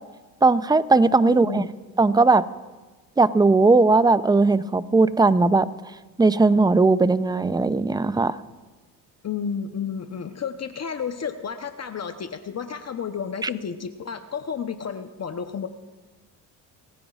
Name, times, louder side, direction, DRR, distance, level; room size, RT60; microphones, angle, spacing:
voice 1, 0.4-1.6 2.0-2.4 3.2-5.7 6.2-8.4 13.4-13.5, right 3 dB, 10° right, 15 dB, 0.5 m, -18 dB
voice 2, 1.2-1.7 9.2-15.7, left 7 dB, 35° left, 8 dB, 0.9 m, -31 dB
26.5 x 15.0 x 2.5 m, 1.3 s
supercardioid pair, 75°, 45 cm